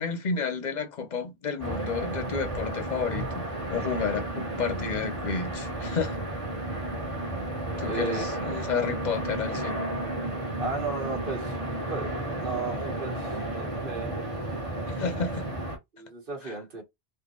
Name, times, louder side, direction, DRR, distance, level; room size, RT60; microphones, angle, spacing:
voice 1, 0.0-6.2 7.8-9.8 14.9-15.5 16.4-16.5, left 5 dB, 45° left, 0.8 m, -31 dB
sound 1, 1.6-15.8, right 1 dB, 30° right, 1.7 m, -32 dB
voice 2, 7.9-8.2 10.6-11.5 11.9-14.1 15.9-16.8, right 4 dB, 50° right, 1.6 m, -35 dB
4.1 x 2.7 x 3.0 m
omnidirectional pair, 1.2 m